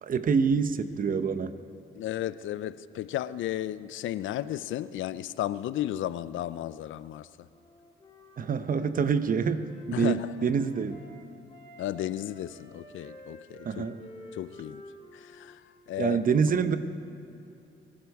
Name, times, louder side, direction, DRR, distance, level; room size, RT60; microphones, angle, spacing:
voice 1, 0.0-1.5 8.4-11.0 13.6-14.0 16.0-16.8, right 6 dB, 45° right, 11 dB, 0.8 m, -26 dB
voice 2, 1.9-7.3 9.9-10.3 11.8-13.9 14.3-14.8 15.1-15.6 15.9-16.2, left 13 dB, 75° left, 16 dB, 0.5 m, -34 dB
Wind instrument woodwind instrument, 7.5-11.1 11.5-15.6, left 1 dB, 25° left, 2.8 m, -51 dB
24.5 x 11.5 x 4.8 m, 2.8 s
cardioid pair, 90°, 20 cm